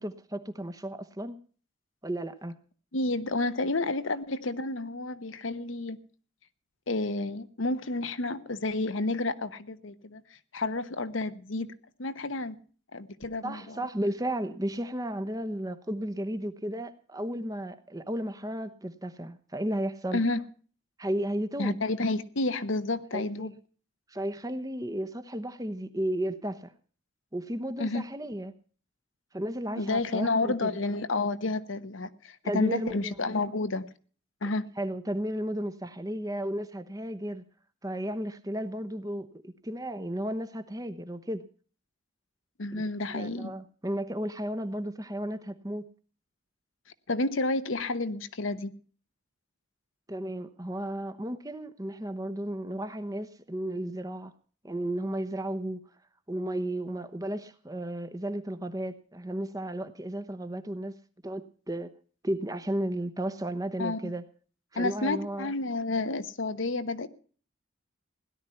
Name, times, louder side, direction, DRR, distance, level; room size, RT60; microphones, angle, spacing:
voice 1, 0.0-1.4 2.0-2.5 13.4-20.2 21.0-21.8 23.1-23.3 24.1-26.7 27.3-28.5 29.3-30.8 32.4-33.1 34.8-37.4 37.8-41.4 42.7-42.8 43.1-45.9 50.1-54.3 54.6-55.9 56.3-61.0 61.2-61.9 62.2-64.2 64.7-65.5, right 1 dB, 15° right, 1.0 m, -34 dB
voice 2, 2.9-6.0 6.9-10.2 10.5-11.7 12.0-12.6 12.9-13.8 20.1-20.4 21.6-23.5 27.8-28.1 29.7-33.9 34.4-34.7 42.6-43.5 47.1-48.7 63.8-64.1 64.8-67.1, left 2 dB, 80° left, 1.1 m, -30 dB
17.0 x 11.5 x 5.7 m
head